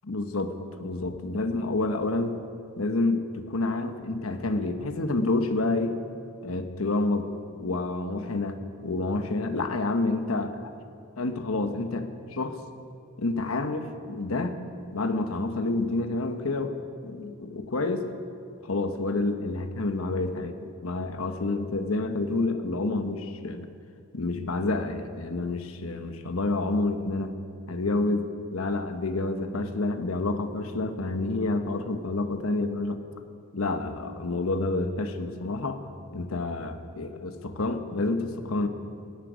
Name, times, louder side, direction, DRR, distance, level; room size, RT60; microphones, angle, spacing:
voice 1, 0.1-2.4 2.8-6.0 6.4-7.3 7.6-10.7 11.2-12.6 13.2-14.6 14.9-18.1 18.6-23.7 24.1-27.4 27.7-33.0 33.5-35.8 36.1-38.7, left 2 dB, 80° left, 7 dB, 1.1 m, -29 dB
12.0 x 11.5 x 9.4 m, 2.5 s
head